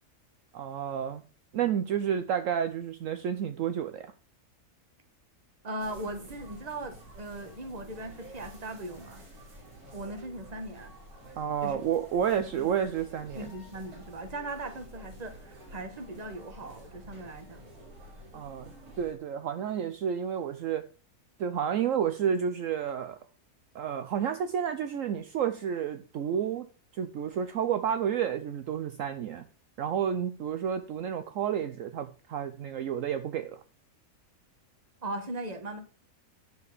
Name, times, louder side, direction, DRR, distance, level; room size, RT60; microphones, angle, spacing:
voice 1, 0.5-1.2 1.5-4.1 11.4-13.5 18.3-20.8 21.4-23.2 23.7-26.7 26.9-29.5 29.8-33.6, right 8 dB, 65° right, 10 dB, 1.0 m, -30 dB
voice 2, 5.6-9.2 9.9-10.9 11.6-11.8 12.5-12.7 13.3-17.7 35.0-35.8, right 1 dB, 30° right, 8 dB, 1.3 m, -39 dB
sound 1, 5.8-19.1, right 1 dB, 90° right, 3.4 m, -49 dB
10.0 x 4.7 x 6.6 m, 0.37 s
omnidirectional pair, 1.6 m